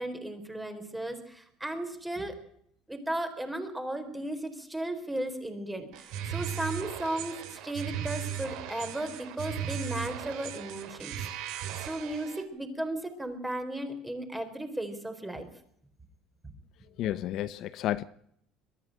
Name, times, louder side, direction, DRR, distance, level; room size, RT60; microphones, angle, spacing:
voice 1, 0.0-2.4 2.9-7.4 7.6-11.1 11.8-15.5 16.4-16.5, right 1 dB, 5° right, 4.1 m, -35 dB
sound 1, 5.9-12.4, right 9 dB, 70° right, 2.9 m, -37 dB
voice 2, 17.0-18.0, left 13 dB, 55° left, 0.8 m, -31 dB
22.5 x 13.5 x 9.1 m
cardioid pair, 130°, 0 cm